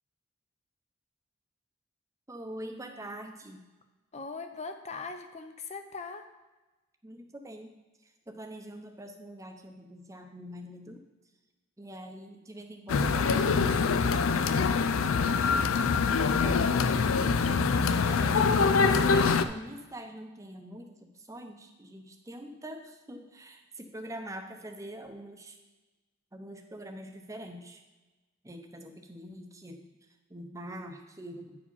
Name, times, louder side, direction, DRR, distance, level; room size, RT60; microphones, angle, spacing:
voice 1, 2.3-3.6 7.0-7.7 8.3-11.0 11.8-15.7 16.4-18.7 19.0-25.6 26.3-27.8 28.4-29.9 30.3-31.6, right 1 dB, 15° right, 4 dB, 0.8 m, -44 dB
voice 2, 4.1-6.2 19.6-19.7, left 4 dB, 35° left, 7 dB, 0.6 m, -40 dB
sound 1, 12.9-19.4, left 5 dB, 75° left, 0.4 m, -24 dB
9.6 x 4.9 x 5.5 m, 1.2 s
head